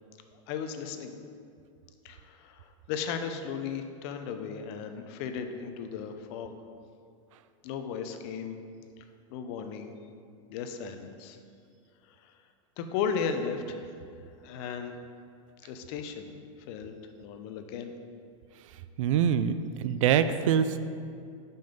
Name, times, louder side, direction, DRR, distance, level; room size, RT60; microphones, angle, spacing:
voice 1, 0.3-1.1 2.0-6.5 7.6-8.5 9.3-9.9 10.5-11.4 12.2-12.3 12.8-13.9 14.4-14.9 15.6-16.3 16.7-17.9, left 6 dB, 50° left, 7 dB, 0.7 m, -35 dB
voice 2, 19.0-20.8, right 8 dB, 75° right, 11 dB, 0.4 m, -25 dB
5.6 x 5.4 x 5.1 m, 2.4 s
supercardioid pair, 140°, 17 cm